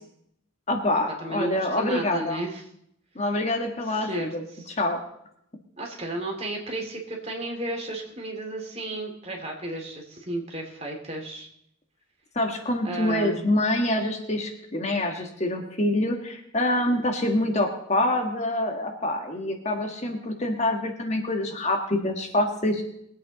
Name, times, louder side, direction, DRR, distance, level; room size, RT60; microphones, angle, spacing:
voice 1, 0.7-2.4 3.1-5.0 12.3-22.8, left 1 dB, 35° left, 3 dB, 1.5 m, -26 dB
voice 2, 1.2-2.6 3.9-4.3 4.6-4.7 5.8-11.5 12.8-13.4, right 2 dB, 30° right, 1 dB, 2.6 m, -33 dB
21.5 x 8.5 x 4.0 m, 0.72 s
head